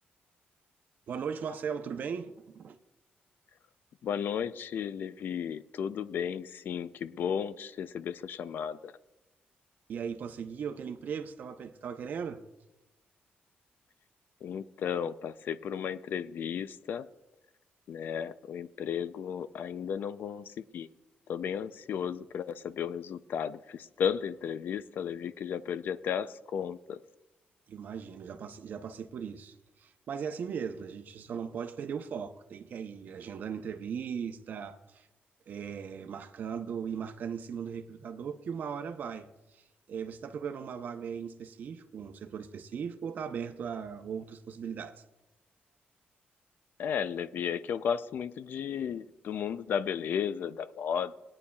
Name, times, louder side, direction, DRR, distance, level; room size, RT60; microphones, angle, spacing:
voice 1, 1.1-2.7 9.9-12.4 27.7-29.5 29.8-35.1 35.5-39.3 39.9-45.0, right 7 dB, 55° right, 0.7 m, -38 dB
voice 2, 4.0-8.9 14.4-17.1 17.9-20.9 21.3-27.0 46.8-51.1, left 8 dB, 60° left, 0.4 m, -34 dB
20.0 x 9.8 x 2.3 m
wide cardioid pair, 160°, 4 cm